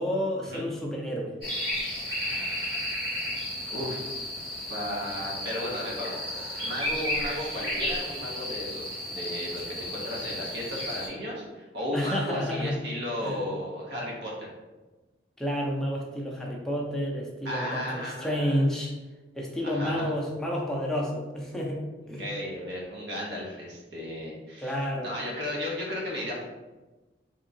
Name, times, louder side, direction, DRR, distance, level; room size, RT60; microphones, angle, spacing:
voice 1, 0.0-1.3 11.9-12.8 13.2-13.4 15.4-18.9 19.4-21.8 22.1-22.3 24.6-25.1, equal, 5° left, -3 dB, 0.5 m, -30 dB
sound 1, 1.4-11.1, left 1 dB, 30° right, 1.4 m, -33 dB
voice 2, 3.7-4.1 4.7-6.2 6.6-14.5 17.4-18.6 19.6-20.1 22.2-24.8 25.0-26.4, equal, 85° right, -3 dB, 0.9 m, -34 dB
3.6 x 2.8 x 2.6 m, 1.2 s
head